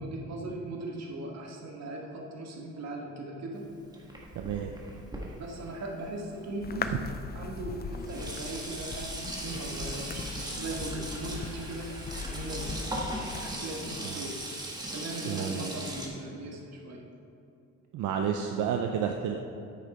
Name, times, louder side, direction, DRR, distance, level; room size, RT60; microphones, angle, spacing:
voice 1, 0.0-3.7 5.4-7.0 7.3-11.9 12.3-12.7 13.4-14.4 14.9-17.0, right 2 dB, 60° right, 0 dB, 1.6 m, -39 dB
Sink (filling or washing), 3.5-6.7 7.4-7.5 7.8-16.1, right 1 dB, 15° right, 1.6 m, -39 dB
voice 2, 4.4-4.7 14.0-14.2 15.2-15.7 17.9-19.4, right 8 dB, 80° right, 3 dB, 0.6 m, -31 dB
sound 1, 6.6-13.5, left 5 dB, 35° left, 0.5 m, -39 dB
8.6 x 6.6 x 4.3 m, 2.6 s
cardioid pair, 90°, 30 cm